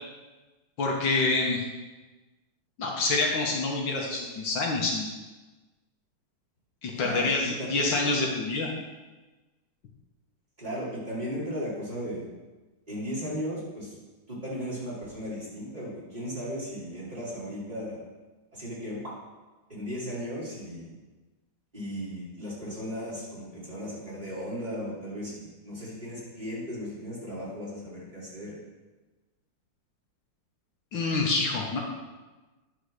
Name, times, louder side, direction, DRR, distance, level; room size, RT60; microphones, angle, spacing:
voice 1, 0.8-1.6 2.8-5.1 6.8-8.7 30.9-31.8, left 3 dB, 65° left, -1 dB, 1.8 m, -27 dB
voice 2, 7.0-8.1 10.6-12.2 12.9-13.9 14.3-18.0 18.5-19.0 19.7-21.0 21.7-28.6, equal, 20° right, -9 dB, 3.5 m, -36 dB
10.0 x 4.8 x 6.5 m, 1.2 s
omnidirectional pair, 2.2 m